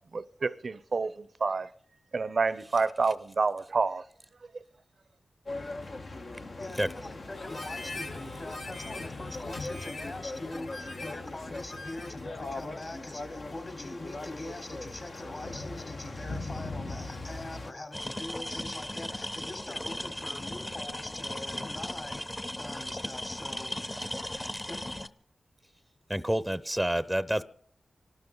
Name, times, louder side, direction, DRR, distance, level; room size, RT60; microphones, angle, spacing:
voice 1, 0.1-1.7 2.1-4.0, right 4 dB, 70° right, 0.6 m, -28 dB
sound 1, 5.5-17.7, left 2 dB, 75° left, 1.4 m, -40 dB
voice 2, 6.6-22.3 22.6-24.0 24.7-24.8, left 2 dB, 50° left, 3.8 m, -43 dB
Harmonica, 7.3-12.3, left 2 dB, 90° left, 1.8 m, -43 dB
sound 2, 17.9-25.1, left 1 dB, 25° left, 0.9 m, -37 dB
voice 3, 26.1-27.4, equal, 5° right, 0.7 m, -28 dB
25.5 x 12.5 x 3.9 m
cardioid pair, 40°, 0 cm